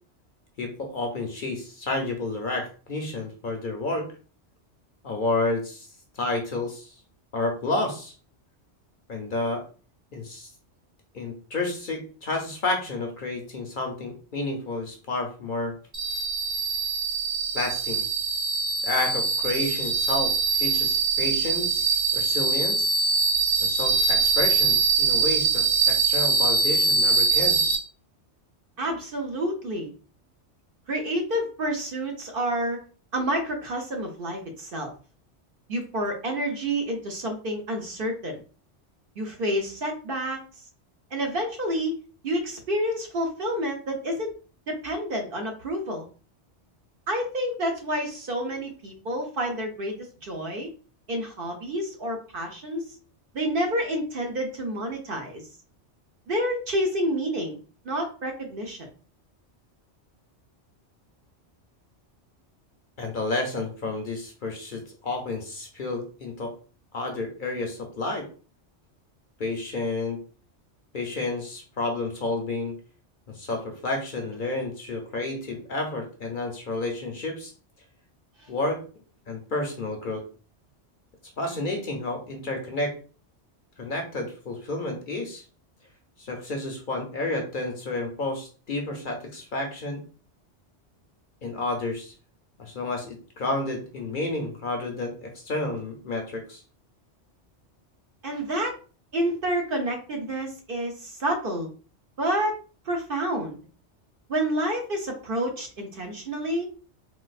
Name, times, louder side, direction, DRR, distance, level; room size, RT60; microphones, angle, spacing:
voice 1, 0.6-4.1 5.0-5.9 6.1-6.9 7.3-8.1 9.1-9.6 10.1-10.5 11.1-15.7 17.5-18.1 18.8-22.9 23.6-27.6 63.0-66.5 66.9-68.3 69.4-70.2 70.9-72.7 73.3-77.5 78.5-78.8 79.3-80.2 81.4-82.9 83.8-85.4 86.2-90.0 91.4-92.1 92.6-96.6, left 2 dB, 55° left, 3 dB, 0.7 m, -30 dB
sound 1, 15.9-27.8, right 4 dB, 20° right, 0.5 m, -23 dB
voice 2, 28.8-29.9 30.9-32.8 33.1-34.9 35.7-38.4 39.2-40.4 41.1-42.0 42.2-44.3 44.7-46.1 47.1-50.7 51.1-53.0 53.3-55.4 56.3-57.6 57.8-58.9 98.2-98.7 99.1-101.7 102.2-102.6 102.9-103.6 104.3-106.7, right 1 dB, 55° right, 2 dB, 0.8 m, -29 dB
3.9 x 2.4 x 2.4 m, 0.38 s
omnidirectional pair, 1.2 m